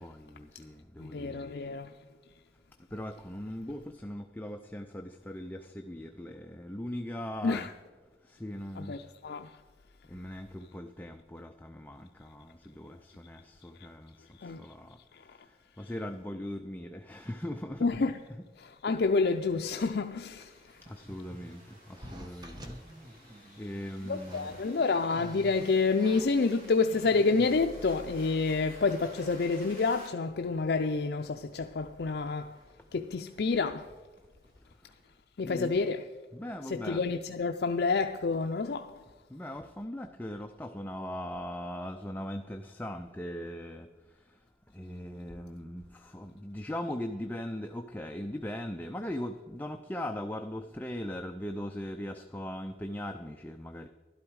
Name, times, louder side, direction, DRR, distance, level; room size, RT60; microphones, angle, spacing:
voice 1, 0.0-1.5 2.9-7.7 8.4-8.9 10.1-14.1 14.6-14.9 15.8-17.9 20.9-21.6 21.9-22.6 23.6-24.5 35.4-35.8 36.3-37.0 39.3-43.9 44.8-53.9, left 1 dB, 10° left, 0.4 m, -39 dB
voice 2, 1.0-1.9 7.4-7.7 8.8-9.5 14.4-14.6 17.8-18.1 18.6-20.5 24.0-32.5 32.9-33.9 35.4-36.0 36.7-39.0, left 4 dB, 65° left, 0.5 m, -28 dB
sound 1, 19.8-30.1, equal, 50° right, 3.2 m, -54 dB
sound 2, 19.9-27.9 28.6-28.7 29.0-29.6 29.9-30.0 30.4-30.7 31.1-34.6 34.9-35.2, equal, 25° right, 1.0 m, -50 dB
12.0 x 12.0 x 4.7 m
head